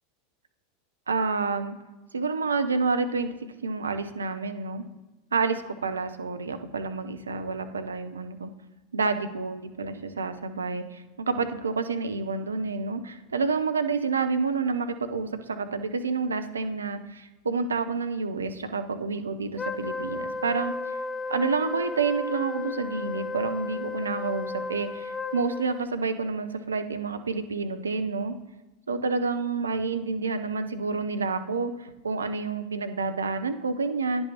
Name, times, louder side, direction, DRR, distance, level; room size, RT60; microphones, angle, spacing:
voice 1, 1.1-1.7 2.1-3.3 3.6-4.8 5.3-8.5 8.9-20.7 21.3-28.3 28.9-34.2, right 4 dB, 85° right, 9 dB, 0.7 m, -29 dB
Wind instrument woodwind instrument, 19.5-25.9, left 3 dB, 10° left, 0.5 m, -34 dB
10.0 x 5.4 x 4.4 m, 1.1 s
figure-of-eight pair, 85°, 0 cm